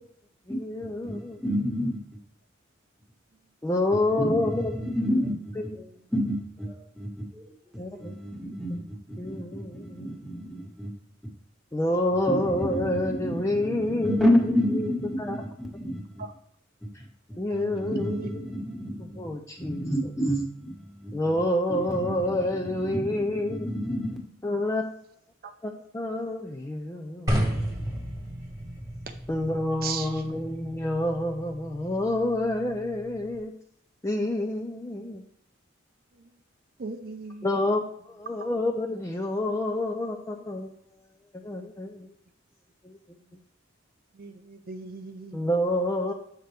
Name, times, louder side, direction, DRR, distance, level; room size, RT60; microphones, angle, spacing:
voice 1, 0.5-1.4 3.6-4.6 5.6-5.7 7.8-8.1 9.2-10.1 11.7-14.3 14.7-14.9 15.2-15.4 17.4-18.2 19.2-19.8 21.1-23.7 24.4-24.9 25.6-27.9 29.3-33.5 34.0-35.2 37.4-40.7 41.3-42.1 42.8-43.0 45.3-46.1, left 1 dB, 15° left, 2 dB, 0.5 m, -28 dB
voice 2, 1.0-2.0 3.9-7.4 7.9-8.8 9.1-10.9 12.1-16.2 17.0-17.1 17.5-19.2 19.6-21.4 21.7-24.2, equal, ahead, -2 dB, 1.4 m, -30 dB
voice 3, 17.5-18.3 25.4-25.5 29.8-30.1 36.8-37.5 44.2-45.4, right 4 dB, 50° right, 7 dB, 0.5 m, -37 dB
sound 1, 27.3-33.4, equal, 20° right, 1.3 m, -33 dB
8.1 x 5.9 x 3.3 m, 0.69 s
head